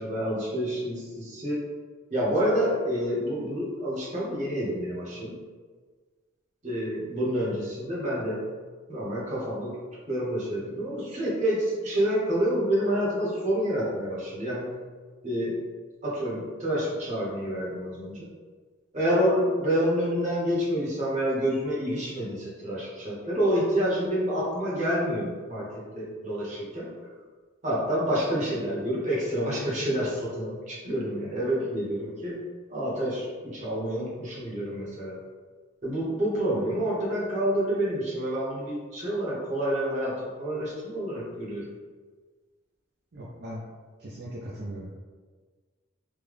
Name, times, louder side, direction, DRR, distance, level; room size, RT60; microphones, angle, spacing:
voice 1, 0.0-1.6 2.1-5.4 6.6-8.4 8.9-9.8 10.1-14.7 15.2-15.6 16.0-18.3 18.9-25.7 25.9-26.9 27.6-32.4 32.7-35.2 35.8-41.7, equal, 35° right, -6 dB, 1.0 m, -28 dB
voice 2, 43.1-43.6 44.0-44.9, right 1 dB, 55° right, -7 dB, 0.5 m, -38 dB
3.3 x 2.2 x 3.5 m, 1.5 s
head